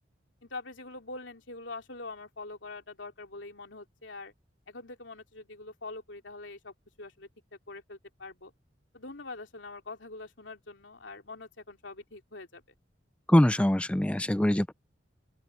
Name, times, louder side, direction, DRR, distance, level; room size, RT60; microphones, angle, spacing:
voice 1, 0.4-4.3 4.7-8.5 8.9-12.6, left 3 dB, 90° left, 3.0 m, -44 dB
voice 2, 13.3-14.7, left 1 dB, 5° left, 0.4 m, -23 dB
open air
head